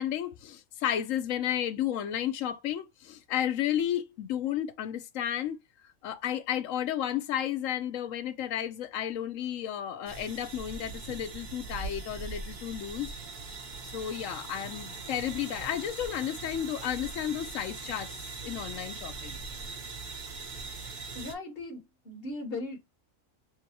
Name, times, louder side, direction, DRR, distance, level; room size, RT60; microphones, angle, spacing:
voice 1, 0.0-5.6 6.0-13.1 13.9-18.2 18.4-19.4, left 10 dB, 80° left, 1.0 m, -32 dB
sound 1, 10.1-21.3, right 4 dB, 40° right, 1.0 m, -41 dB
voice 2, 21.1-22.8, left 2 dB, 45° left, 1.7 m, -38 dB
6.1 x 2.3 x 2.8 m
omnidirectional pair, 1.4 m